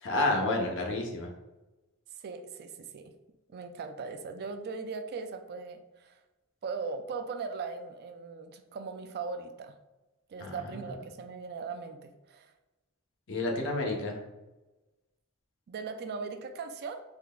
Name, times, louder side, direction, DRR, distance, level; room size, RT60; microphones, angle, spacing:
voice 1, 0.0-1.3 10.4-10.6 13.3-14.2, left 2 dB, 60° left, 1 dB, 0.7 m, -29 dB
voice 2, 2.2-3.1 3.5-6.2 6.6-9.8 10.3-12.5 15.7-17.0, right 4 dB, 45° right, 8 dB, 0.3 m, -39 dB
3.8 x 3.3 x 2.2 m, 1.1 s
head